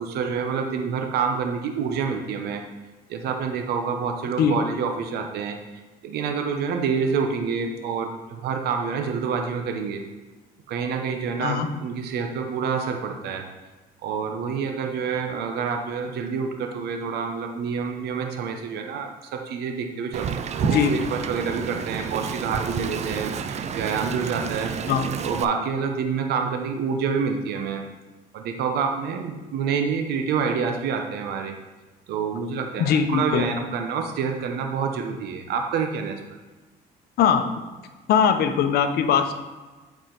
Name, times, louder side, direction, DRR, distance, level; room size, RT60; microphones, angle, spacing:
voice 1, 0.0-2.6 3.1-5.6 6.0-10.0 10.7-13.4 14.0-24.7 25.2-27.8 28.3-31.5 32.1-36.2, right 6 dB, 70° right, 4 dB, 0.9 m, -27 dB
Wind, 20.1-25.4, right 7 dB, 40° right, 0.5 m, -30 dB
voice 2, 32.8-33.5 37.2-37.5 38.1-39.3, left 7 dB, 70° left, 8 dB, 0.8 m, -20 dB
8.8 x 4.8 x 4.0 m, 1.2 s
cardioid pair, 110°, 17 cm